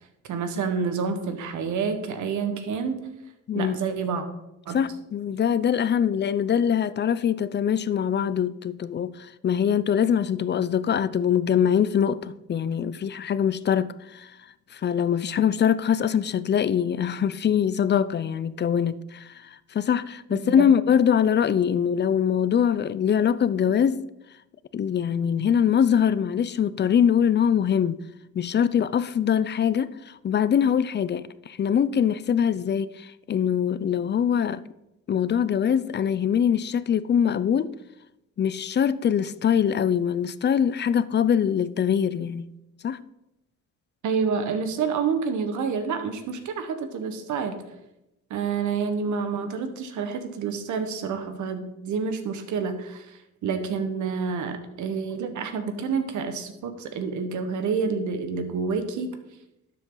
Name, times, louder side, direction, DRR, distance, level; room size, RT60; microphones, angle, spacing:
voice 1, 0.3-3.1 3.5-4.2 4.6-4.8 20.3-20.7 44.0-47.6 48.3-59.2, right 5 dB, 75° right, 1.4 m, -28 dB
voice 2, 4.7-14.3 14.7-19.3 19.7-24.0 24.7-28.0 28.3-34.6 35.1-37.7 38.4-42.5 42.8-43.0, left 8 dB, 35° left, 0.5 m, -23 dB
12.0 x 7.5 x 3.9 m
cardioid pair, 90°, 30 cm